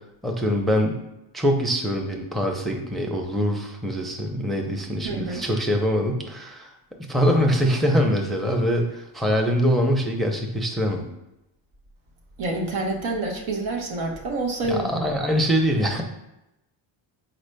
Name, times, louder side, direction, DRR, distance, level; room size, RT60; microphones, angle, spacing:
voice 1, 0.2-1.0 1.3-6.7 7.1-11.0 14.7-16.0, equal, ahead, 2 dB, 0.6 m, -23 dB
voice 2, 5.0-5.4 12.4-15.0, right 2 dB, 70° right, 1 dB, 1.1 m, -27 dB
4.9 x 4.3 x 2.2 m, 0.89 s
cardioid pair, 80°, 49 cm